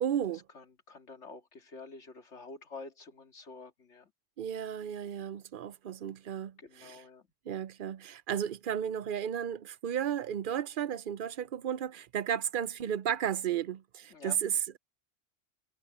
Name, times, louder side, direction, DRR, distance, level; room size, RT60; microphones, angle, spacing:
voice 1, 0.0-0.4 4.4-7.0 7.5-14.8, right 9 dB, 55° right, 0.7 m, -34 dB
voice 2, 0.5-4.1 6.6-7.3 14.1-14.4, left 3 dB, 80° left, 2.3 m, -48 dB
omnidirectional pair, 1.2 m